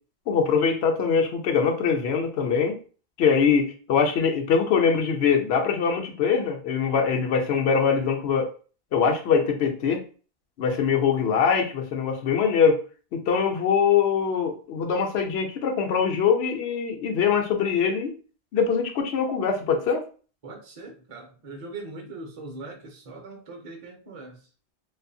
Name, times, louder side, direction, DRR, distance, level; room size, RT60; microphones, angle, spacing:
voice 1, 0.3-2.8 3.2-8.5 8.9-10.0 10.6-12.8 13.1-18.1 18.5-20.0, left 6 dB, 90° left, 0.9 m, -23 dB
voice 2, 20.4-24.5, right 3 dB, 40° right, 0.6 m, -41 dB
2.6 x 2.4 x 2.6 m
omnidirectional pair, 1.1 m